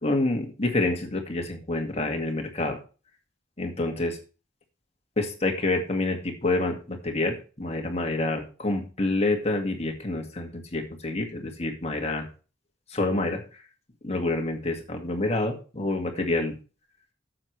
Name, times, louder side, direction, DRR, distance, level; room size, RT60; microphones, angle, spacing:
voice 1, 0.0-2.8 3.6-4.2 5.2-12.3 12.9-13.4 14.0-16.6, left 2 dB, 30° left, 3 dB, 2.0 m, -27 dB
12.0 x 7.8 x 3.3 m, 0.34 s
head